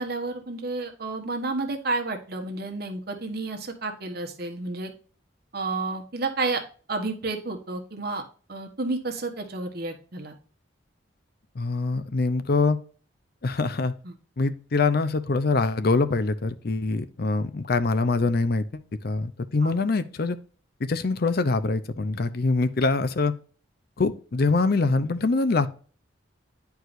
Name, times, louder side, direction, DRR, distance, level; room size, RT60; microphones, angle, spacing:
voice 1, 0.0-4.9 5.5-8.2 8.5-10.4 14.0-14.1 19.6-19.7, right 3 dB, 50° right, 4 dB, 1.2 m, -31 dB
voice 2, 11.6-12.8 13.4-13.9 14.4-20.4 20.8-23.3 24.0-25.7, left 3 dB, 50° left, 12 dB, 0.6 m, -24 dB
9.5 x 4.7 x 2.5 m, 0.40 s
head